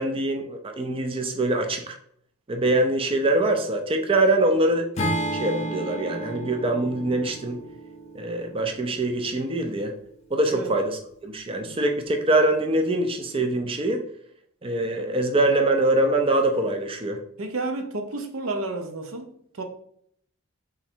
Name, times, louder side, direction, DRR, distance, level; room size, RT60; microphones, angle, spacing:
voice 1, 0.0-2.0 2.5-4.9 5.4-7.6 8.1-9.9 10.3-14.1 14.6-17.2, right 2 dB, 25° right, 0.4 m, -24 dB
Acoustic guitar / Strum, 5.0-9.2, right 1 dB, 30° left, 0.7 m, -32 dB
voice 2, 17.4-19.7, right 2 dB, 65° right, 0.7 m, -31 dB
3.7 x 3.1 x 4.4 m
head